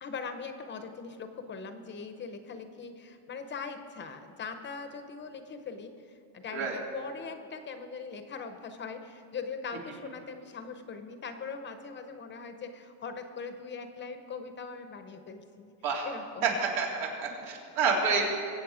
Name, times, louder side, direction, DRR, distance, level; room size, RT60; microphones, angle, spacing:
voice 1, 0.0-15.7 16.0-16.5 17.2-17.3, left 5 dB, 25° left, 8 dB, 0.6 m, -41 dB
voice 2, 16.4-18.2, right 5 dB, 85° right, -2 dB, 3.4 m, -28 dB
22.5 x 8.3 x 4.9 m, 2.7 s
cardioid pair, 155°, 49 cm